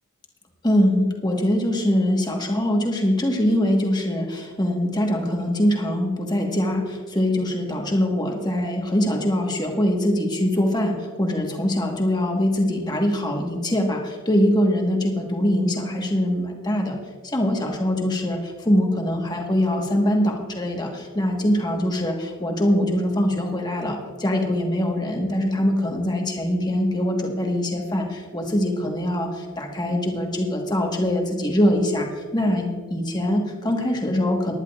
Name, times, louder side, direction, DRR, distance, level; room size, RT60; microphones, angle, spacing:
voice 1, 0.6-17.0 17.2-34.5, left 1 dB, 20° left, 1 dB, 1.4 m, -23 dB
19.5 x 10.5 x 2.4 m, 1.5 s
head